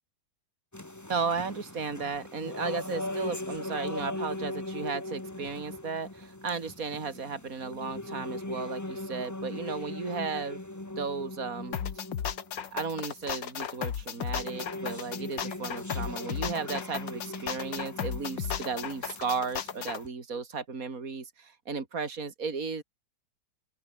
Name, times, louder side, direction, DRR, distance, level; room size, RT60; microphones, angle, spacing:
sound 1, 0.7-13.4 13.9-20.1, left 1 dB, 10° left, 1.4 m, -39 dB
voice 1, 1.1-10.6 11.0-11.8 12.7-22.8, right 5 dB, 50° right, 3.4 m, -35 dB
sound 2, 11.7-20.0, left 8 dB, 80° left, 2.2 m, -35 dB
open air
omnidirectional pair, 1.9 m